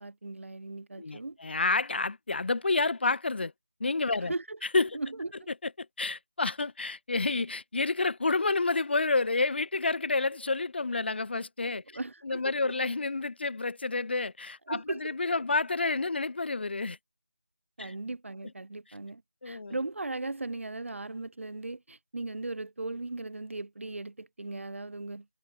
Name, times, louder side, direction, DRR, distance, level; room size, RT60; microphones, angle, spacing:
voice 1, 0.0-1.4 4.2-4.6 4.9-5.5 11.9-12.7 14.7-15.1 17.8-25.2, right 2 dB, 65° right, 1.5 m, -38 dB
voice 2, 1.0-3.5 3.8-4.3 4.7-5.0 5.8-11.8 12.2-17.0 17.8-17.9 19.4-19.8, left 3 dB, 50° left, 0.7 m, -29 dB
figure-of-eight pair, 170°, 8 cm